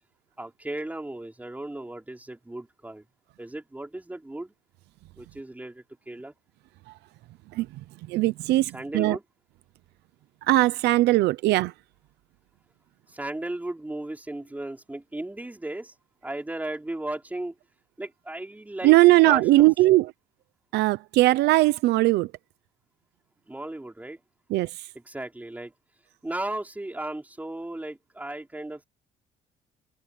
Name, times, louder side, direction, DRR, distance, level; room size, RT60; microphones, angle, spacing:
voice 1, 0.4-3.0 3.4-4.5 5.2-6.3 8.7-9.2 13.1-15.9 16.2-17.6 18.0-19.7 23.5-24.2 24.9-25.7 26.2-28.8, right 1 dB, 10° right, 5.2 m, -35 dB
voice 2, 8.1-9.2 10.5-11.7 18.8-20.1 20.7-22.3 24.5-24.7, right 18 dB, 80° right, 0.7 m, -19 dB
cardioid pair, 110°, 17 cm